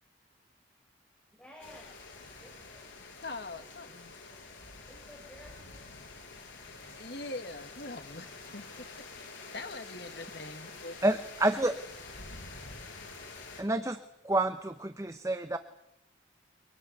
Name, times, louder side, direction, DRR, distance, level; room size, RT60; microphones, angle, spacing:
voice 1, 1.4-1.8 2.4-2.8 4.9-6.1, left 1 dB, 5° left, 5.3 m, -54 dB
sound 1, 1.6-13.6, left 3 dB, 85° left, 7.9 m, -48 dB
voice 2, 3.2-4.1 7.0-11.0, left 2 dB, 60° left, 2.1 m, -43 dB
voice 3, 11.0-11.8 13.6-14.0 14.2-15.6, right 2 dB, 15° right, 0.9 m, -28 dB
24.5 x 19.5 x 9.5 m
head